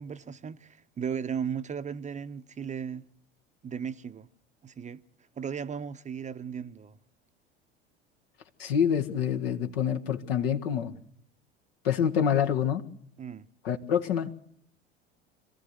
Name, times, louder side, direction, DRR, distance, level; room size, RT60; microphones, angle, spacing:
voice 1, 0.0-3.0 3.6-4.3 4.6-5.0 5.4-7.0 13.2-13.5, right 7 dB, 25° right, 0.8 m, -36 dB
voice 2, 8.6-10.9 11.8-12.8 13.6-14.3, left 8 dB, 65° left, 1.7 m, -26 dB
26.0 x 14.5 x 8.1 m
figure-of-eight pair, 70°, 32 cm